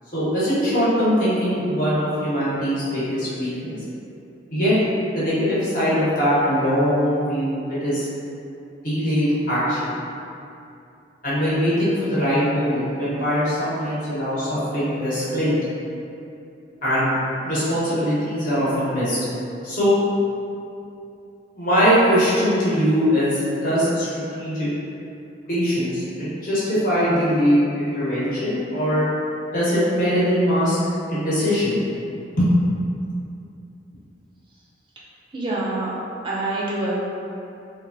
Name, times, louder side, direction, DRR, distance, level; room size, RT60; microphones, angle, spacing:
voice 1, 0.1-3.7 4.5-4.7 5.1-8.1 8.8-9.9 11.2-15.5 16.8-17.1 17.4-19.2 19.6-20.0 21.5-24.1 24.3-24.7 25.5-29.0 29.5-30.8 31.1-31.8 32.4-32.5, equal, 50° left, -11 dB, 1.0 m, -21 dB
voice 2, 35.3-35.9 36.2-37.0, right 2 dB, 25° right, -6 dB, 0.3 m, -25 dB
3.3 x 2.2 x 2.5 m, 2.7 s
head